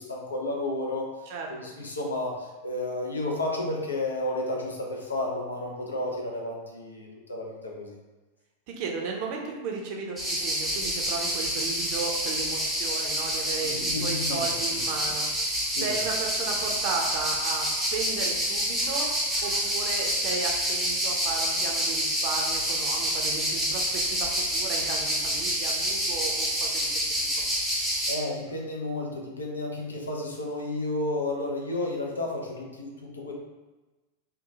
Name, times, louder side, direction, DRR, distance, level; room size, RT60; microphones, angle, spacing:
voice 1, 0.0-8.0 13.6-14.8 15.6-16.0 28.1-33.3, left 2 dB, 75° left, -1 dB, 0.5 m, -32 dB
voice 2, 8.7-15.3 15.7-19.1 19.4-27.0, right 4 dB, 45° right, 1 dB, 0.5 m, -35 dB
sound 1, 10.2-28.1, equal, 5° right, 0.7 m, -28 dB
2.8 x 2.2 x 2.6 m, 1.2 s
figure-of-eight pair, 90°, 0 cm